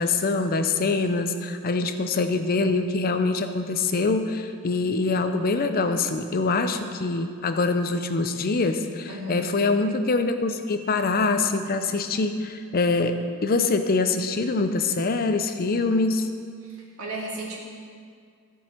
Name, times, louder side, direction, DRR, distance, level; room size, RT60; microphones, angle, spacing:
voice 1, 0.0-16.3, left 3 dB, 40° left, 8 dB, 0.5 m, -24 dB
voice 2, 9.1-9.5 16.6-17.6, right 1 dB, 70° right, -3 dB, 2.0 m, -35 dB
14.0 x 5.4 x 4.5 m, 2.2 s
head